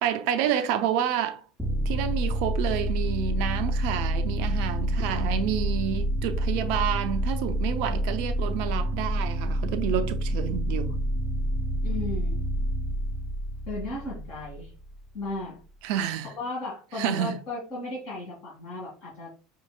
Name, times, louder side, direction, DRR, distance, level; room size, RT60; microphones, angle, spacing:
voice 1, 0.0-1.4 1.9-11.0 15.8-16.3 17.0-17.4, right 9 dB, 60° right, 0.5 m, -29 dB
sound 1, 1.6-15.0, equal, 5° right, 0.6 m, -28 dB
voice 2, 11.8-12.5 13.7-14.7 15.1-15.6 16.3-19.3, left 2 dB, 50° left, 1.9 m, -35 dB
5.5 x 2.9 x 2.3 m
figure-of-eight pair, 75°, 0 cm